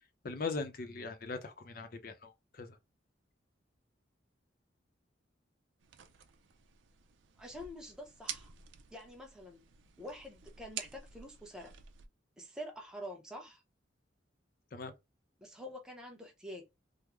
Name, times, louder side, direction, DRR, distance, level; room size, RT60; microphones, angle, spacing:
voice 1, 0.2-2.7 14.7-14.9, left 4 dB, 50° left, 0.6 m, -40 dB
sound 1, 5.8-12.1, right 9 dB, 80° right, 0.5 m, -49 dB
voice 2, 7.4-8.5 8.9-9.6 10.0-11.7 12.4-13.6 15.4-16.7, equal, 5° right, 0.7 m, -47 dB
3.6 x 2.1 x 3.0 m
head